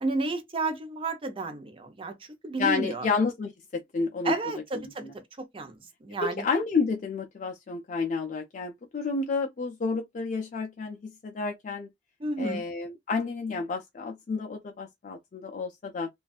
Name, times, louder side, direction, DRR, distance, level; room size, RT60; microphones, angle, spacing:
voice 1, 0.0-3.1 4.2-6.4 12.2-12.6, right 2 dB, 30° right, 0.5 m, -32 dB
voice 2, 2.6-4.3 5.0-5.1 6.2-11.9 12.4-16.1, left 4 dB, 45° left, 0.3 m, -30 dB
2.5 x 2.3 x 2.3 m
head